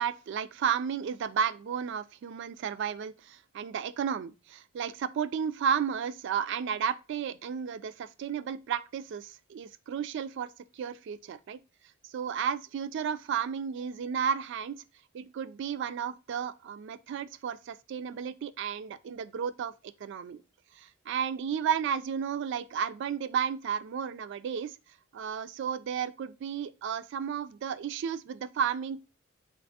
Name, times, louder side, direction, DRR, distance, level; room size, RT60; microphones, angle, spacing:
voice 1, 0.0-11.6 12.1-14.8 15.1-19.7 20.0-20.4 20.8-24.7 25.1-29.0, right 7 dB, 60° right, 0.3 m, -33 dB
4.0 x 3.2 x 2.7 m
head